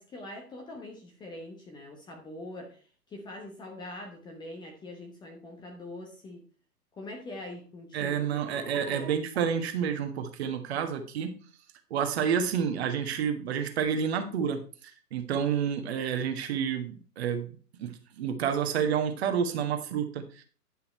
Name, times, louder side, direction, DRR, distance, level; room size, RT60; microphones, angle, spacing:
voice 1, 0.0-6.4 6.9-9.2, left 1 dB, 10° left, 2 dB, 1.0 m, -43 dB
voice 2, 7.9-11.3 11.9-14.6 15.1-17.5 17.8-20.4, right 7 dB, 40° right, 7 dB, 1.5 m, -29 dB
10.5 x 5.7 x 4.3 m, 0.39 s
figure-of-eight pair, 130°, 47 cm